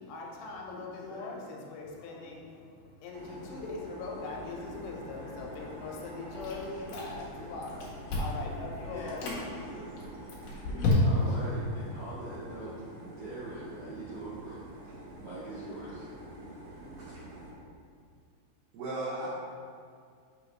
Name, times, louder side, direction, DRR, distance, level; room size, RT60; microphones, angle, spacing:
voice 1, 0.0-9.4 9.6-9.7 10.3-10.4, left 3 dB, 85° left, -1 dB, 3.3 m, -41 dB
voice 2, 0.7-1.2 4.5-5.6 7.4-7.8 8.9-9.9 10.4-10.6 11.0-14.7 15.1-16.1, right 2 dB, 55° right, -13 dB, 1.7 m, -44 dB
sound 1, 3.1-17.5, right 1 dB, 70° right, 2.2 m, -46 dB
Chewing mastication, 6.4-7.3 7.6-8.5 9.0-9.4 10.0-11.4, left 3 dB, 65° left, 2.5 m, -30 dB
voice 3, 18.7-19.3, right 2 dB, 90° right, -5 dB, 2.2 m, -37 dB
7.6 x 6.1 x 3.0 m, 2.2 s
omnidirectional pair, 5.7 m